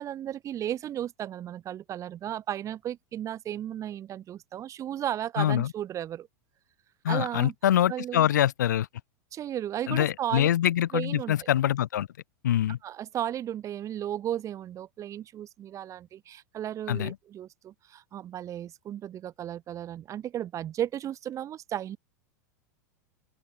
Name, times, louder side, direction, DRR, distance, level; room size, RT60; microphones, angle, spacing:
voice 1, 0.0-6.3 7.1-7.5 7.9-8.3 9.3-10.5 10.9-11.5 12.8-22.0, right 11 dB, 35° right, 2.2 m, -34 dB
voice 2, 5.4-5.7 7.0-8.9 9.9-12.1 12.4-12.8 16.9-17.1, left 11 dB, 80° left, 1.0 m, -24 dB
open air
hypercardioid pair, 100°, 9 cm